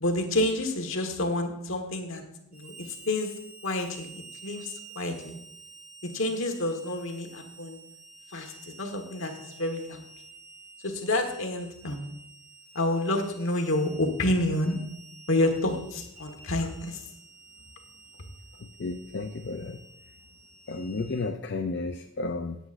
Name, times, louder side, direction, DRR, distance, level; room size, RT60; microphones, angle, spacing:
voice 1, 0.0-2.2 2.5-3.3 3.6-5.3 6.1-7.8 8.3-10.0 10.8-12.1 12.7-14.8 15.3-17.0, left 1 dB, 70° left, 4 dB, 1.5 m, -29 dB
Harmonica, 2.5-21.3, right 3 dB, 75° right, 3.3 m, -50 dB
voice 2, 18.8-19.8 20.7-22.6, left 3 dB, 55° left, 5 dB, 0.5 m, -32 dB
17.0 x 8.1 x 2.6 m, 0.80 s
head